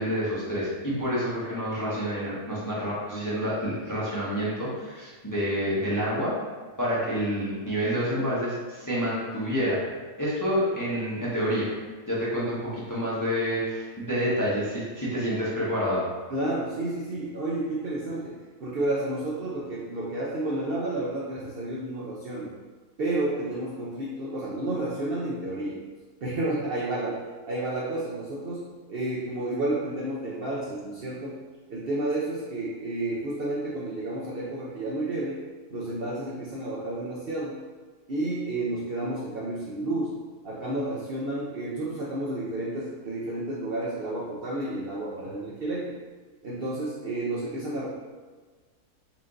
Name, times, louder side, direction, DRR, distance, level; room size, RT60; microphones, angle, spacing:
voice 1, 0.0-6.3 6.8-9.8 10.2-11.7 12.1-16.0, equal, 15° left, -8 dB, 0.7 m, -28 dB
voice 2, 16.3-18.3 18.6-22.5 23.0-25.8 26.2-31.4 31.7-35.4 35.7-37.6 38.1-40.2 40.4-45.9 46.4-47.9, right 2 dB, 60° right, -5 dB, 0.6 m, -31 dB
4.3 x 2.6 x 3.7 m, 1.4 s
omnidirectional pair, 1.6 m